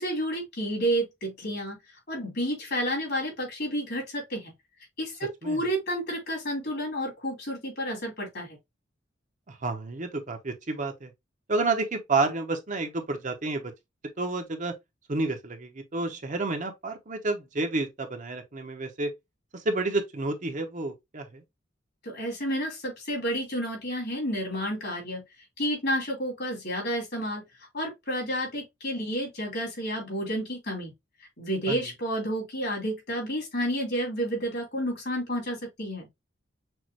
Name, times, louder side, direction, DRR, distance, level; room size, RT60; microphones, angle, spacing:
voice 1, 0.0-1.8 2.1-4.5 5.0-8.6 22.0-25.2 25.6-30.9 31.2-36.1, equal, 55° left, 3.3 m, -30 dB
voice 2, 9.5-11.1 11.5-13.7 14.2-14.7 15.1-19.1 19.5-21.4 31.7-31.8, right 3 dB, 40° right, 0.8 m, -30 dB
6.2 x 2.5 x 3.0 m
head